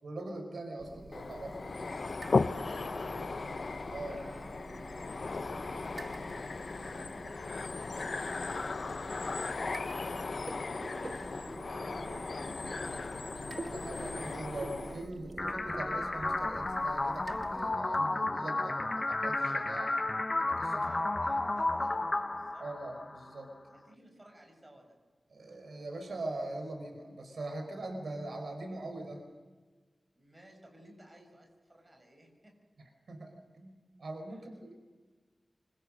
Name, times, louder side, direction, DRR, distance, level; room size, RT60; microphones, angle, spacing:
voice 1, 0.0-1.6 3.9-4.2 12.6-12.9 13.7-20.0 20.4-20.8 22.6-23.5 25.3-29.2 33.1-34.7, right 2 dB, 80° right, 4 dB, 4.7 m, -42 dB
sound 1, 0.8-17.7, right 2 dB, 40° right, 1.4 m, -47 dB
sound 2, 1.1-15.1, left 3 dB, 60° left, 0.7 m, -37 dB
voice 2, 2.3-3.7 4.9-9.2 9.5-13.4 20.8-22.7 23.7-25.0 27.6-27.7 30.1-32.6 34.3-34.5, right 1 dB, 20° right, 3 dB, 6.7 m, -57 dB
sound 3, 15.4-23.3, left 2 dB, 30° left, 0.9 m, -32 dB
26.0 x 25.5 x 6.4 m, 1.3 s
wide cardioid pair, 100°, 0 cm